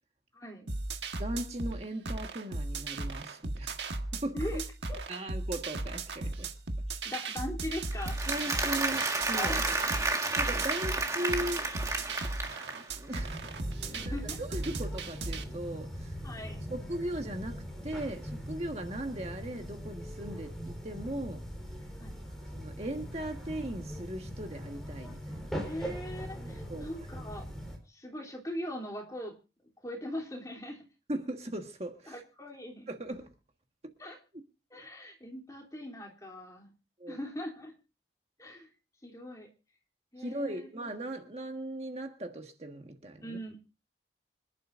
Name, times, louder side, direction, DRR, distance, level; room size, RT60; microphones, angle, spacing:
voice 1, 0.3-0.7 4.3-4.6 4.9-5.0 7.0-8.4 9.3-9.8 12.2-12.4 13.9-14.4 16.2-16.6 21.8-22.2 25.5-27.5 27.9-29.4 29.8-30.8 32.1-32.9 34.0-34.2 34.7-36.7 37.1-37.7 38.4-38.7 39.0-39.5 40.1-40.7 43.2-43.6, left 1 dB, 20° left, 0 dB, 3.1 m, -40 dB
sound 1, 0.7-15.4, right 2 dB, 80° right, 1.5 m, -36 dB
voice 2, 1.2-3.8 4.1-4.5 5.1-6.5 6.9-7.0 8.3-9.5 10.3-11.7 12.7-13.5 13.9-16.2 16.7-21.4 22.4-25.5 26.7-26.8 31.1-32.2 32.9-33.3 37.0-37.2 40.2-43.4, right 1 dB, 35° right, 4 dB, 1.5 m, -38 dB
Applause, 7.9-12.9, right 3 dB, 20° right, 1.7 m, -31 dB
sound 2, 13.1-27.8, equal, ahead, 4.5 m, -41 dB
26.0 x 11.0 x 2.6 m, 0.31 s
head